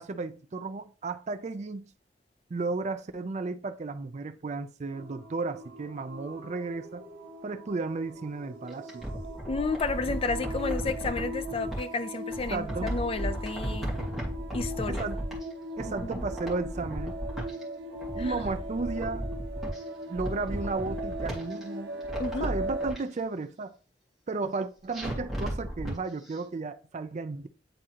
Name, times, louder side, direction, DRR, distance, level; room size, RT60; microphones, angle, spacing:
voice 1, 0.0-1.9 2.5-7.0 7.4-9.1 12.4-13.0 14.9-15.2 15.8-17.2 18.2-19.3 20.1-22.0 22.4-23.7 24.3-27.5, right 3 dB, 40° right, 0.4 m, -34 dB
sound 1, 4.9-22.9, right 1 dB, 90° right, 0.7 m, -39 dB
sound 2, 8.7-11.8 12.3-15.5 15.8-17.6 17.9-19.8 20.1-21.6 22.0-23.0 24.9-26.0 26.3-26.4, equal, ahead, 1.9 m, -35 dB
voice 2, 9.5-13.9 14.5-15.0 16.0-16.2 18.2-18.3 22.2-22.5, left 3 dB, 35° left, 0.4 m, -32 dB
9.1 x 3.6 x 2.9 m
head